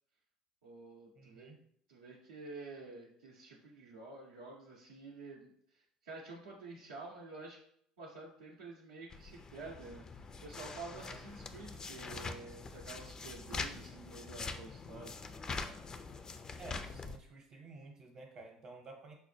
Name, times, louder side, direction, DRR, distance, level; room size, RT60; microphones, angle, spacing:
voice 1, 0.6-1.5 1.9-7.6 8.0-15.1, right 3 dB, 80° right, -5 dB, 0.5 m, -49 dB
voice 2, 1.2-1.6 11.0-11.1 16.6-19.1, right 3 dB, 45° right, 0 dB, 0.8 m, -52 dB
sound 1, 9.1-17.2, left 4 dB, 30° left, 0.3 m, -44 dB
4.7 x 2.0 x 3.2 m, 0.67 s
hypercardioid pair, 65°, 2 cm